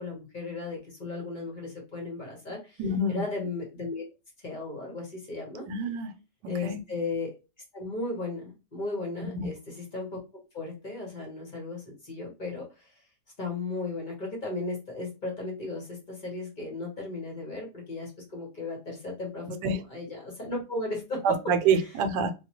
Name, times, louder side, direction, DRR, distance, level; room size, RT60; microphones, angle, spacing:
voice 1, 0.0-2.8 3.1-4.0 4.4-5.6 6.5-7.3 7.7-10.2 10.5-13.0 13.4-21.2 21.7-21.8, left 3 dB, 35° left, -1 dB, 0.9 m, -36 dB
voice 2, 2.8-3.2 5.7-6.1 6.6-6.8 9.3-9.5 19.6-19.8 21.2-22.3, right 4 dB, 85° right, 8 dB, 1.2 m, -26 dB
3.7 x 2.3 x 2.9 m, 0.29 s
omnidirectional pair, 1.8 m